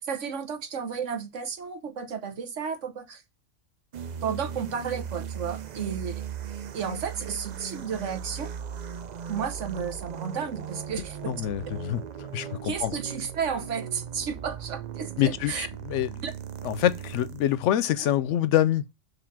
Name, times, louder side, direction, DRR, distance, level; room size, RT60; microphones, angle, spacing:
voice 1, 0.0-3.2 4.2-6.2 6.7-8.5 9.3-11.3 12.6-15.7 16.2-16.3, right 6 dB, 75° right, 1.4 m, -33 dB
sound 1, 3.9-17.6, right 8 dB, 55° right, 0.5 m, -38 dB
voice 2, 11.3-13.0 15.2-16.2 16.6-18.8, left 11 dB, 75° left, 0.9 m, -26 dB
6.8 x 3.3 x 5.9 m
omnidirectional pair, 1.3 m